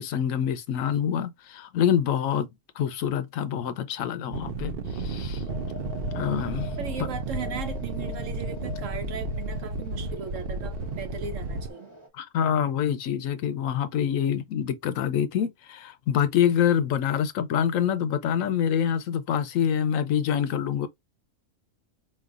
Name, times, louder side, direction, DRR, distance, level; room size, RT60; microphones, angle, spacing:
voice 1, 0.0-2.5 2.8-5.4 6.1-6.7 12.1-20.9, left 9 dB, 85° left, 1.1 m, -26 dB
sound 1, 4.3-11.7, right 3 dB, 55° right, 0.8 m, -32 dB
sound 2, 5.5-12.1, left 4 dB, 25° right, 1.1 m, -45 dB
voice 2, 6.8-11.9, right 5 dB, 75° right, 1.2 m, -37 dB
4.5 x 3.2 x 2.4 m
omnidirectional pair, 1.4 m